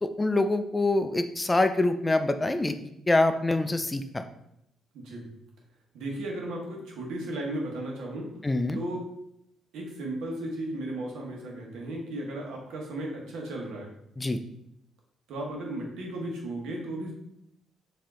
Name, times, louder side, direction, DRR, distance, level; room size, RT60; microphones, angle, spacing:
voice 1, 0.0-2.8 3.1-4.2 8.4-8.8 14.2-14.4, left 2 dB, 20° left, 9 dB, 0.3 m, -25 dB
voice 2, 4.9-5.3 5.9-8.3 8.7-9.1 9.7-13.9 15.3-17.1, right 1 dB, 85° right, -1 dB, 1.1 m, -35 dB
4.8 x 2.7 x 3.7 m, 0.78 s
cardioid pair, 90°, 0 cm